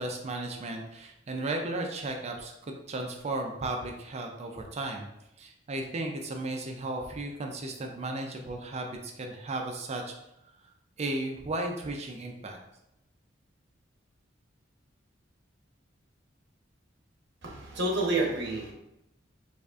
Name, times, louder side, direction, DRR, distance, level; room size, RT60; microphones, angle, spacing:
voice 1, 0.0-5.1 5.4-10.1 11.0-12.6, right 2 dB, 35° right, 3 dB, 0.4 m, -35 dB
voice 2, 17.4-18.7, right 2 dB, 60° right, -1 dB, 1.0 m, -29 dB
4.9 x 2.4 x 2.4 m, 0.86 s
head